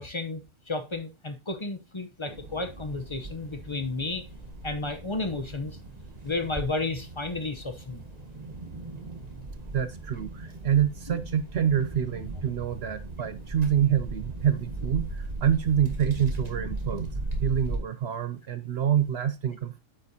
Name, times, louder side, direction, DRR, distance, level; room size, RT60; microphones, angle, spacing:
voice 1, 0.0-4.3 4.6-5.8 6.2-8.0 11.1-11.2, left 3 dB, 30° left, 0.5 m, -32 dB
sound 1, 2.3-17.8, right 2 dB, 30° right, 1.4 m, -37 dB
voice 2, 9.7-17.1 17.4-19.8, right 9 dB, 60° right, 0.7 m, -26 dB
8.7 x 7.5 x 2.7 m
omnidirectional pair, 1.6 m